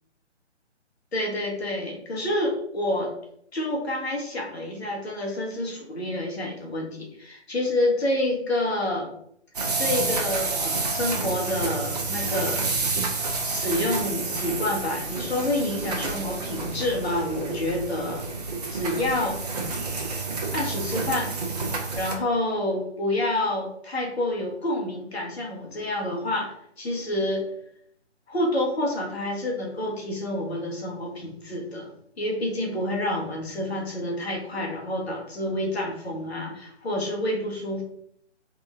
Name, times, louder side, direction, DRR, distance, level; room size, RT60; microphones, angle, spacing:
voice 1, 1.1-3.1 3.5-9.1 9.8-12.6 13.4-18.3 18.7-19.4 20.5-21.3 22.0-27.5 28.3-31.9 32.2-37.8, left 1 dB, 60° left, 1 dB, 1.6 m, -28 dB
sound 1, 9.5-22.1, right 3 dB, 35° right, 0.8 m, -29 dB
3.9 x 3.7 x 3.5 m, 0.69 s
figure-of-eight pair, 145°, 35 cm